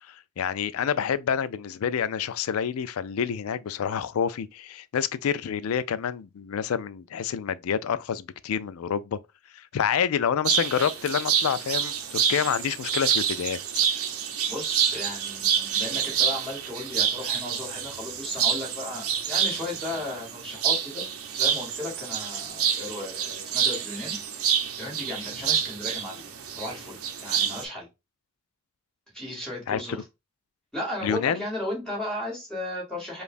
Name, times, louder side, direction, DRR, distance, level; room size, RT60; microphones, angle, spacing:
voice 1, 0.1-9.2 9.5-13.6 29.7-29.8 31.0-31.4, left 8 dB, 85° left, 0.4 m, -28 dB
sound 1, 10.4-27.6, right 8 dB, 90° right, 0.7 m, -28 dB
voice 2, 14.4-27.9 29.1-30.0 30.7-33.2, left 1 dB, 5° left, 2.1 m, -35 dB
5.1 x 2.4 x 2.5 m
head